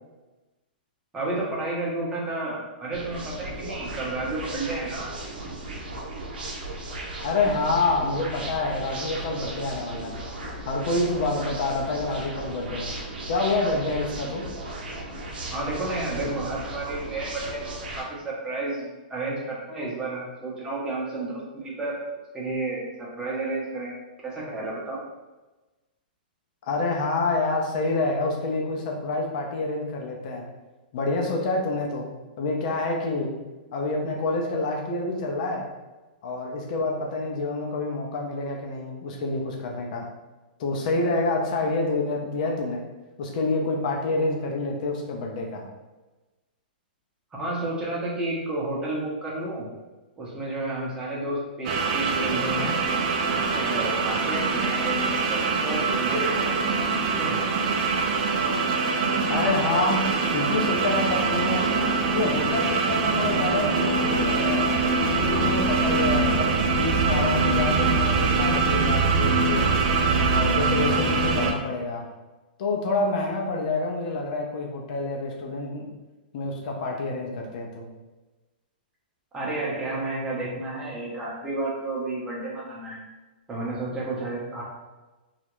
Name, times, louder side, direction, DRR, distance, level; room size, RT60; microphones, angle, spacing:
voice 1, 1.1-5.1 15.5-22.0 22.3-23.9 24.2-25.0 47.3-49.7 50.2-52.8 53.3-56.8 57.2-57.4 79.3-83.0 83.5-84.6, right 2 dB, 15° right, -5 dB, 0.7 m, -31 dB
sound 1, 2.9-18.0, right 1 dB, 80° right, 0.7 m, -36 dB
voice 2, 7.2-10.2 10.6-13.0 13.3-14.5 26.6-30.5 30.9-32.1 32.4-33.4 33.7-35.7 36.2-40.1 40.6-42.8 43.2-45.7 59.3-61.7 62.1-64.8 65.1-69.7 70.3-72.1 72.6-75.9 76.3-77.9, left 2 dB, 55° left, 0 dB, 0.6 m, -27 dB
sound 2, 51.6-71.5, right 4 dB, 50° right, 0.4 m, -23 dB
2.4 x 2.0 x 2.9 m, 1.2 s
hypercardioid pair, 140°, 5 cm